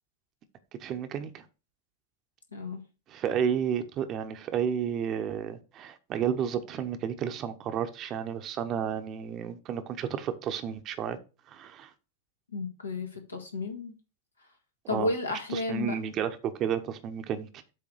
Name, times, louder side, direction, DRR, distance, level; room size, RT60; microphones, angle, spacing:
voice 1, 0.8-1.4 3.1-11.2 11.5-11.9 14.9-15.1 15.5-17.5, right 8 dB, 35° right, 0.9 m, -31 dB
voice 2, 12.5-13.9 14.9-16.0, left 3 dB, 80° left, 1.7 m, -32 dB
7.8 x 3.3 x 6.4 m
figure-of-eight pair, 90°, 0 cm